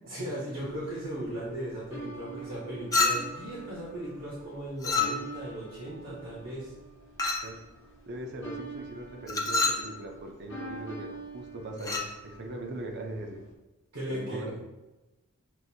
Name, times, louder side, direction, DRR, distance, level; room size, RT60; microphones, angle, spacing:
voice 1, 0.1-6.7 13.9-14.6, right 1 dB, 75° right, -7 dB, 1.1 m, -37 dB
sound 1, 0.5-13.5, right 3 dB, 55° left, 0.8 m, -46 dB
Chink clink, 2.9-3.5 4.8-5.5 7.2-7.6 9.3-9.9 11.8-12.1, left 3 dB, 15° left, 0.4 m, -28 dB
voice 2, 8.1-13.4 14.1-14.5, right 1 dB, 50° right, 2 dB, 0.6 m, -40 dB
6.2 x 2.6 x 2.7 m, 1.1 s
head